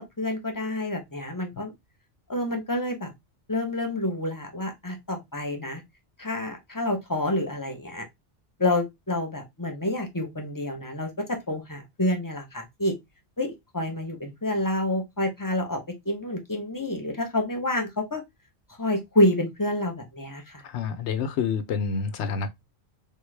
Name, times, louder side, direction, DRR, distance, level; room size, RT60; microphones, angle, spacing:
voice 1, 0.0-1.7 2.3-3.1 3.5-5.8 6.2-8.0 8.6-13.0 13.4-18.2 18.8-20.6, left 1 dB, 20° left, 0.6 m, -28 dB
voice 2, 20.6-22.5, left 6 dB, 85° left, 0.9 m, -28 dB
3.7 x 2.2 x 3.1 m
omnidirectional pair, 1.1 m